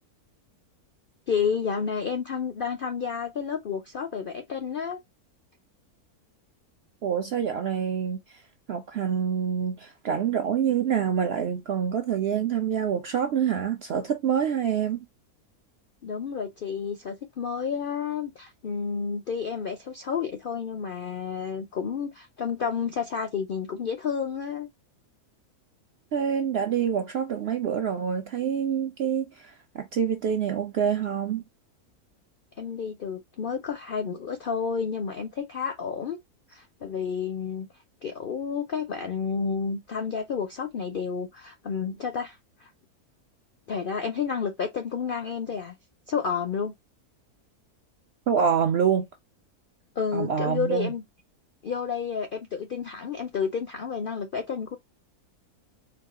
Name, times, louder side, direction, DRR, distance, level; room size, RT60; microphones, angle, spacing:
voice 1, 1.3-5.0 16.0-24.7 32.6-36.2 36.5-37.7 38.0-42.7 43.7-45.8 46.1-46.7 50.0-51.0 51.6-54.8, left 6 dB, 65° left, 0.5 m, -30 dB
voice 2, 7.0-8.4 8.7-15.1 26.1-31.4 48.3-49.1 50.1-50.9, right 8 dB, 65° right, 0.6 m, -26 dB
4.4 x 2.3 x 3.7 m
omnidirectional pair, 1.6 m